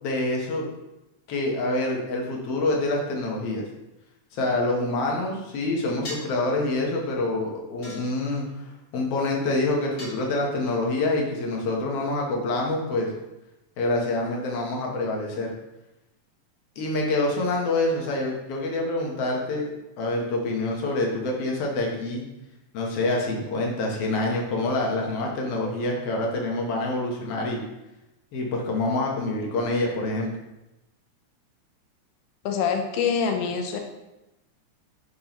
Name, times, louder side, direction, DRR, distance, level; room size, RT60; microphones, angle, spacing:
voice 1, 0.0-0.6 1.3-3.6 4.3-13.1 13.8-15.5 16.8-19.7 20.0-22.2 22.7-27.6 28.3-30.3, left 2 dB, 60° left, -1 dB, 1.9 m, -26 dB
sound 1, 6.0-6.4 7.8-8.5 10.0-10.7, left 1 dB, 40° left, 2.4 m, -40 dB
voice 2, 32.4-33.8, left 6 dB, 90° left, 4 dB, 1.3 m, -25 dB
10.5 x 3.6 x 3.0 m, 0.97 s
omnidirectional pair, 3.5 m